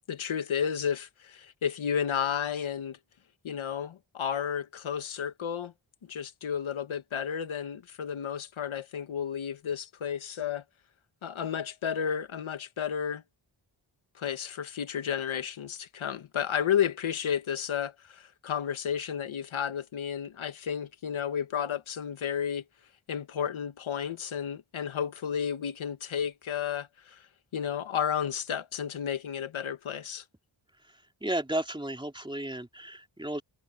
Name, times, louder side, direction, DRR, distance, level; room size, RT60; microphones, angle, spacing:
voice 1, 0.1-3.0 3.4-5.7 6.0-10.6 11.2-13.2 14.2-22.6 23.1-27.3 27.5-30.2, left 8 dB, 85° left, 1.8 m, -32 dB
voice 2, 30.9-33.4, right 1 dB, 10° right, 3.1 m, -34 dB
cardioid pair, 65°, 47 cm